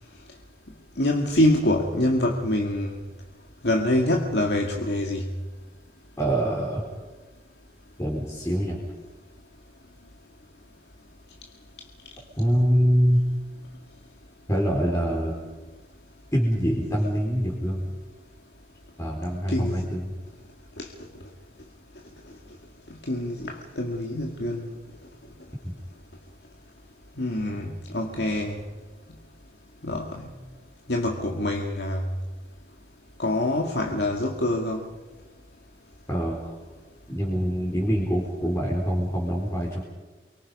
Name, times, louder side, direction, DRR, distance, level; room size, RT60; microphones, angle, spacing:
voice 1, 1.0-3.0 3.6-5.3 19.5-19.8 20.8-20.9 23.1-24.7 27.2-28.6 29.8-30.2 30.9-32.0 33.2-34.8, left 1 dB, 65° left, 1 dB, 2.2 m, -25 dB
voice 2, 6.2-6.8 8.0-8.8 12.4-13.2 14.5-15.3 16.3-17.9 19.0-20.1 25.6-25.7 36.1-36.6 37.1-39.8, equal, 15° left, -3 dB, 4.1 m, -24 dB
29.5 x 23.5 x 5.5 m, 1.3 s
head